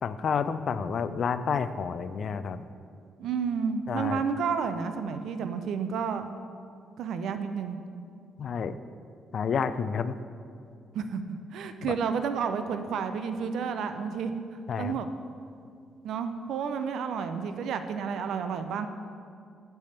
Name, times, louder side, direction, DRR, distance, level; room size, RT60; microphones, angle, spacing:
voice 1, 0.0-2.6 3.9-4.2 8.4-8.8 9.3-10.1 11.8-12.0 14.7-15.0, left 6 dB, 55° left, 12 dB, 0.4 m, -30 dB
voice 2, 3.2-6.3 7.0-7.8 10.9-15.1 16.0-18.9, right 6 dB, 75° right, 9 dB, 0.5 m, -31 dB
10.5 x 3.5 x 6.5 m, 2.4 s
cardioid pair, 90°, 0 cm